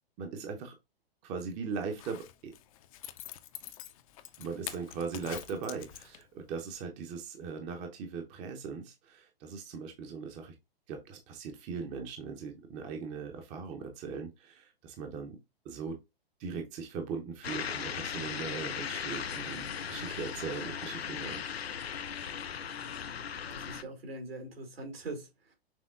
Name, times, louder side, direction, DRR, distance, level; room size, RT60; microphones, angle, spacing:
voice 1, 0.2-0.7 1.2-2.5 4.4-10.5 10.9-15.4 15.6-16.0 16.4-21.4, right 5 dB, 25° right, 0.7 m, -39 dB
Zipper (clothing), 1.8-6.4 6.8-6.9, left 12 dB, 35° left, 0.5 m, -45 dB
sound 1, 17.4-23.8, left 7 dB, 80° left, 0.5 m, -38 dB
voice 2, 23.5-25.5, right 2 dB, 75° right, 2.3 m, -42 dB
6.2 x 3.4 x 2.4 m
figure-of-eight pair, 110°, 30 cm